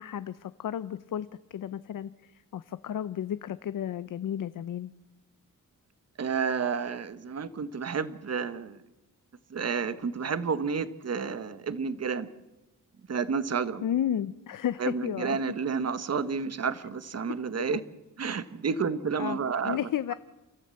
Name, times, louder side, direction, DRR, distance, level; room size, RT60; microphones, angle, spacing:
voice 1, 0.0-4.9 13.8-15.4 19.2-19.4 19.6-20.1, left 10 dB, 70° left, 14 dB, 0.7 m, -33 dB
voice 2, 6.2-8.8 9.5-12.3 13.1-13.8 14.8-17.8 18.2-19.8, right 5 dB, 50° right, 13 dB, 1.2 m, -30 dB
29.5 x 14.0 x 7.7 m, 1.1 s
wide cardioid pair, 115°, 33 cm